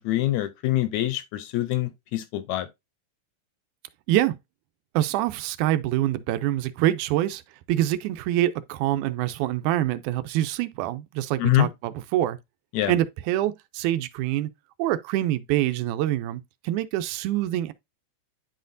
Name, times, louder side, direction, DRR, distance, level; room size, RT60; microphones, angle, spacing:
voice 1, 0.0-2.7 11.4-11.7 12.7-12.9, left 15 dB, 80° left, 1.7 m, -25 dB
voice 2, 4.9-7.4 7.7-12.4 12.9-14.5 14.8-17.7, right 14 dB, 85° right, 2.0 m, -25 dB
10.0 x 4.2 x 2.6 m
omnidirectional pair, 3.5 m